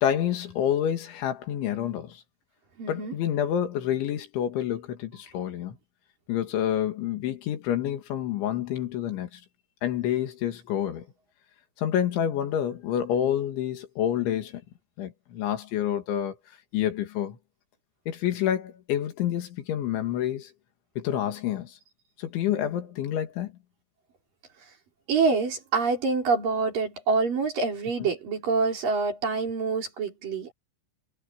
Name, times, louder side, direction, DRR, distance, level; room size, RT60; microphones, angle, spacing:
voice 1, 0.0-2.2 2.9-5.8 6.3-9.4 9.8-11.0 11.8-14.6 15.0-16.4 16.7-17.4 18.1-20.5 21.0-21.7 22.2-23.5 28.0-28.1, left 10 dB, 75° left, 4.4 m, -28 dB
voice 2, 2.8-3.1 25.1-30.5, right 4 dB, 45° right, 5.6 m, -26 dB
omnidirectional pair, 5.5 m